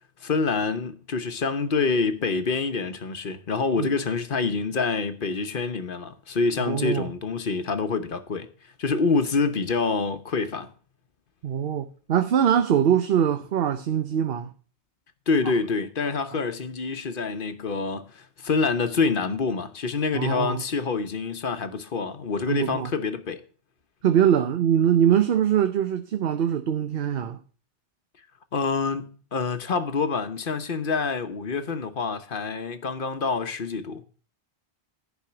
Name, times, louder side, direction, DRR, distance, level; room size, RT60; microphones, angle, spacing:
voice 1, 0.2-8.5 8.8-10.7 15.3-23.4 28.5-34.0, left 4 dB, 55° left, 1.1 m, -26 dB
voice 2, 6.6-7.1 11.4-14.5 20.1-20.6 22.5-22.9 24.0-27.4, right 9 dB, 65° right, 0.9 m, -23 dB
10.5 x 5.4 x 7.8 m
omnidirectional pair, 1.1 m